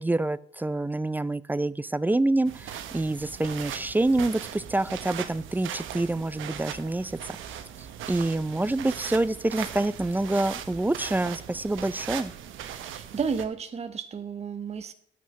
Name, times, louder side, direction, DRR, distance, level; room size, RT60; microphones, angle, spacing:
voice 1, 0.0-7.4 8.1-12.3, right 2 dB, 10° right, 19 dB, 0.4 m, -27 dB
sound 1, 2.5-13.4, right 9 dB, 80° right, 1.0 m, -39 dB
voice 2, 12.8-14.9, right 6 dB, 30° right, 9 dB, 0.8 m, -32 dB
8.1 x 6.1 x 6.2 m, 0.63 s
cardioid pair, 90°, 20 cm